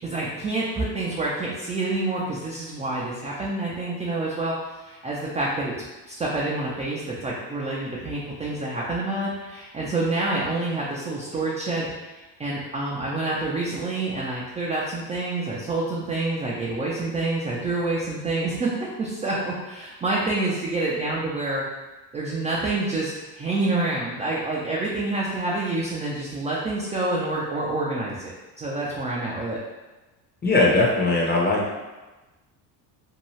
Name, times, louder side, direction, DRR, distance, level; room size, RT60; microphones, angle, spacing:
voice 1, 0.0-5.7 6.1-18.7 19.0-21.6 22.1-29.6, right 2 dB, 15° right, -5 dB, 0.3 m, -27 dB
voice 2, 30.4-31.6, left 2 dB, 20° left, -2 dB, 0.7 m, -19 dB
2.7 x 2.2 x 3.1 m, 1.1 s
hypercardioid pair, 75°, 50 cm